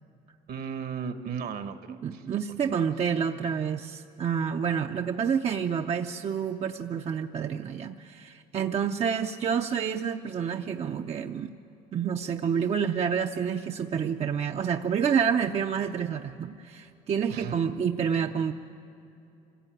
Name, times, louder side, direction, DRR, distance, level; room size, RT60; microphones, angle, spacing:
voice 1, 0.5-2.9 17.3-17.5 18.1-18.3, right 7 dB, 60° right, 10 dB, 1.2 m, -37 dB
voice 2, 2.0-11.5 11.9-18.5, right 7 dB, 40° right, 5 dB, 0.6 m, -28 dB
25.5 x 16.0 x 9.1 m, 2.8 s
cardioid pair, 110°, 17 cm